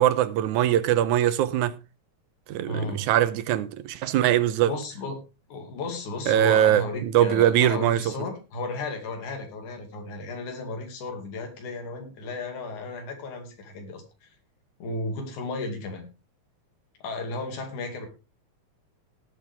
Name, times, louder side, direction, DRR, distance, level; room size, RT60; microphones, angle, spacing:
voice 1, 0.0-1.8 2.5-4.7 6.3-8.1, right 12 dB, 85° right, 2.3 m, -22 dB
voice 2, 2.7-3.1 4.6-5.2 5.5-14.3 14.8-16.0 17.0-18.1, left 2 dB, 85° left, 3.8 m, -34 dB
18.0 x 7.8 x 3.5 m
omnidirectional pair, 3.4 m